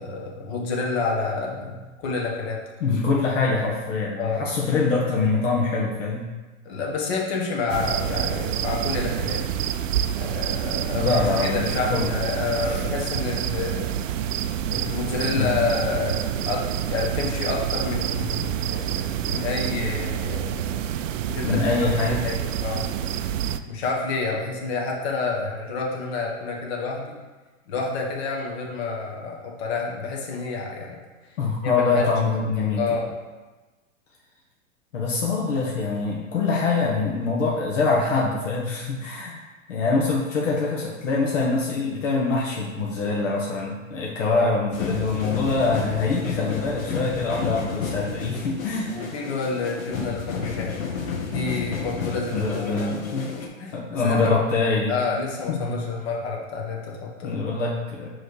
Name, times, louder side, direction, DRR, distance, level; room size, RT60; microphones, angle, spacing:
voice 1, 0.0-2.6 2.9-3.0 4.2-4.6 6.6-9.4 10.2-13.9 14.7-20.8 21.2-21.6 22.0-22.9 23.7-27.2 27.7-31.0 31.6-32.1 32.7-33.1 48.9-50.8 51.2-52.9 53.4-54.4 54.9-57.4, left 4 dB, 50° left, -2 dB, 1.5 m, -29 dB
voice 2, 2.8-6.3 11.0-12.1 12.6-12.8 15.3-15.5 21.4-22.2 31.4-32.8 34.9-39.4 39.7-48.9 52.3-53.3 53.7-54.9 55.5-55.8 57.2-58.1, left 4 dB, 65° left, -3 dB, 1.2 m, -24 dB
sound 1, 7.7-23.6, right 10 dB, 70° right, 0.5 m, -27 dB
sound 2, 44.7-53.5, left 5 dB, 85° left, 1.2 m, -32 dB
6.2 x 3.3 x 4.8 m, 1.2 s
hypercardioid pair, 135°, 40 cm